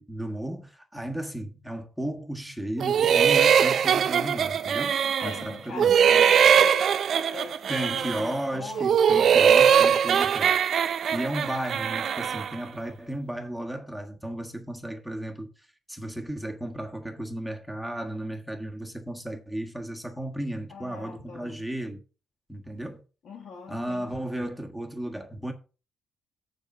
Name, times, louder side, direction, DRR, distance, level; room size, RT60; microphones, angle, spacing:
voice 1, 0.0-4.9 5.2-6.0 7.7-10.6 11.1-15.5 15.9-22.0 22.5-23.0 23.7-25.5, right 1 dB, ahead, 1.5 m, -34 dB
sound 1, 2.8-5.5 5.8-8.3 8.8-12.5, right 8 dB, 60° right, 0.7 m, -21 dB
voice 2, 4.8-6.9 7.3-10.0 20.7-21.6 23.2-24.3, left 5 dB, 65° left, 2.2 m, -42 dB
6.9 x 5.4 x 6.1 m
cardioid pair, 90°, 0 cm